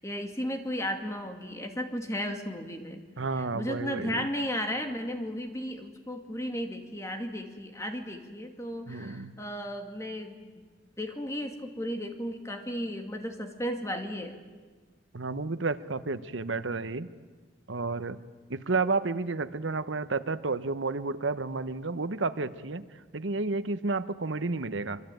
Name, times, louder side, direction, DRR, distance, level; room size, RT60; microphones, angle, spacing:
voice 1, 0.0-3.0 3.3-10.7 11.0-14.4, equal, 15° left, 5 dB, 2.3 m, -34 dB
voice 2, 3.2-4.2 8.9-9.3 15.1-17.1 17.7-18.2 18.5-22.9 23.1-25.0, right 3 dB, 75° right, 13 dB, 1.0 m, -31 dB
25.5 x 24.5 x 9.2 m, 1.4 s
head